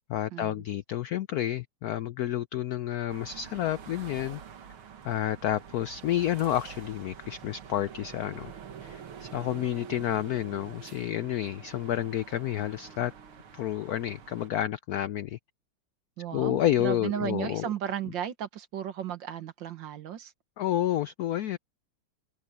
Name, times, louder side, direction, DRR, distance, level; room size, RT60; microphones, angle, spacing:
voice 1, 0.1-4.4 5.0-8.5 8.8-13.1 13.5-15.4 16.3-17.7 20.6-21.6, left 12 dB, 90° left, 0.8 m, -30 dB
sound 1, 3.1-14.5, right 7 dB, 90° right, 2.4 m, -46 dB
voice 2, 16.2-20.3, right 9 dB, 65° right, 1.8 m, -34 dB
omnidirectional pair, 2.2 m